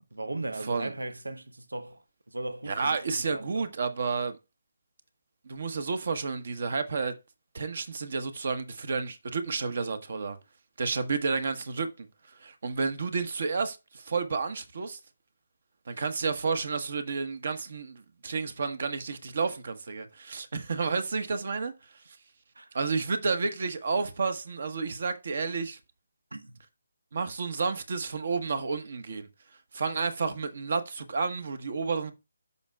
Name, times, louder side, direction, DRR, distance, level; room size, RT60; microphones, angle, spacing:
voice 1, 0.1-3.7 22.5-22.8 26.3-26.6, right 2 dB, 85° right, 1.0 m, -38 dB
voice 2, 2.7-4.4 5.4-7.1 7.5-10.4 10.8-12.1 12.4-15.0 15.9-21.7 22.1-22.2 22.7-25.8 27.1-29.3 29.7-32.1, right 4 dB, 55° right, 1.2 m, -31 dB
13.0 x 5.4 x 2.3 m
figure-of-eight pair, 150°, 0 cm